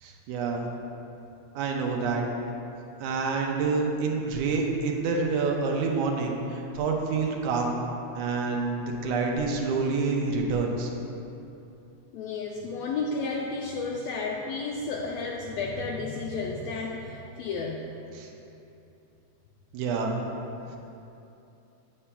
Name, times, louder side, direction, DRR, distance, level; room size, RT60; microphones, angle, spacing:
voice 1, 0.0-0.7 1.6-2.2 3.0-7.8 8.2-10.9 18.2-18.3 19.7-20.1, right 4 dB, 85° right, 0 dB, 2.2 m, -27 dB
voice 2, 12.1-17.8, left 4 dB, 85° left, -1 dB, 1.5 m, -32 dB
9.8 x 6.9 x 2.2 m, 2.8 s
omnidirectional pair, 3.5 m